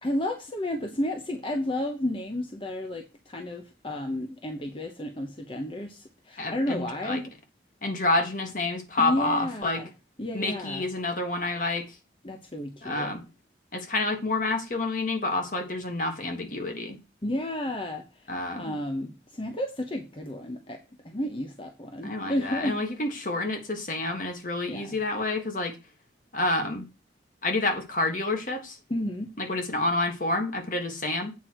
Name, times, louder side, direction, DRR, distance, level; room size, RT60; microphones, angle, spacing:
voice 1, 0.0-7.3 9.0-9.9 10.2-10.9 12.2-13.1 17.2-22.8 24.7-25.0 28.9-29.3, left 1 dB, 30° left, 0.9 m, -32 dB
voice 2, 6.4-7.2 7.8-9.8 10.3-11.8 12.8-13.2 13.7-17.0 18.3-18.8 22.0-25.8 26.3-26.9 27.4-28.8 29.4-31.3, left 2 dB, 50° left, 1.6 m, -28 dB
8.3 x 4.5 x 6.2 m
head